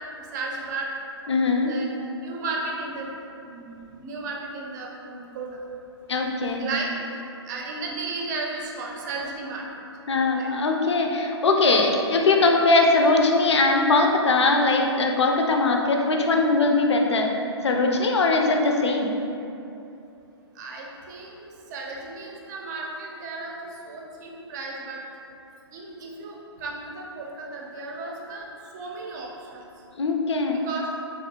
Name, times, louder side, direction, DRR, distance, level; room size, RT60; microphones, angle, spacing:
voice 1, 0.3-0.9 1.7-1.9 2.2-3.1 3.4-5.5 6.6-6.9 7.5-9.6 10.3-10.5 20.6-23.6 23.8-25.0 25.7-26.3 26.6-28.4 28.7-29.6 30.6-30.9, right 3 dB, 40° right, -1 dB, 0.5 m, -34 dB
voice 2, 1.3-1.7 6.1-6.6 10.1-17.3 17.6-19.1 30.0-30.6, left 3 dB, 80° left, 2 dB, 0.4 m, -21 dB
3.4 x 2.5 x 2.7 m, 2.7 s
hypercardioid pair, 130°, 14 cm